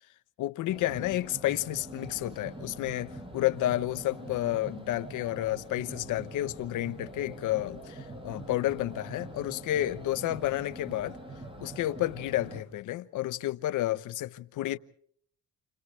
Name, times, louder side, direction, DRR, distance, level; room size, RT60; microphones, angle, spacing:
voice 1, 0.4-11.2 11.6-14.8, left 14 dB, 85° left, 1.0 m, -31 dB
sound 1, 0.7-12.6, right 1 dB, 15° right, 7.1 m, -44 dB
30.0 x 29.0 x 3.3 m
cardioid pair, 90°, 30 cm